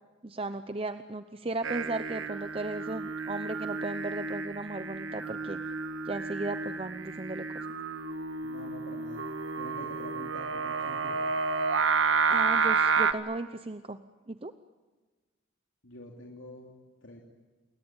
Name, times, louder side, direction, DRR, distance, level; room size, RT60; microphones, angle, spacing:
voice 1, 0.2-5.6 6.0-7.7 12.3-14.0 14.3-14.5, right 2 dB, 30° right, 10 dB, 0.8 m, -36 dB
Singing, 1.6-13.1, right 5 dB, 90° right, 1.6 m, -30 dB
voice 2, 8.4-9.2 9.6-11.2 15.8-16.7 17.0-17.2, left 1 dB, 90° left, 0 dB, 3.1 m, -46 dB
29.5 x 21.5 x 8.9 m, 1.3 s
head